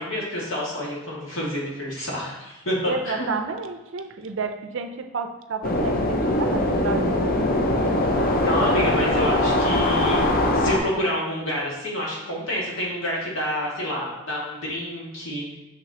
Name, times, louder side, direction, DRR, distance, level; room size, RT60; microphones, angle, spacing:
voice 1, 0.0-3.3 8.4-15.5, equal, 65° left, -5 dB, 2.2 m, -28 dB
voice 2, 2.8-7.4, right 4 dB, 60° right, 8 dB, 0.5 m, -31 dB
sound 1, 5.6-10.8, left 1 dB, 45° left, 0.6 m, -21 dB
6.2 x 6.0 x 2.9 m, 0.98 s
head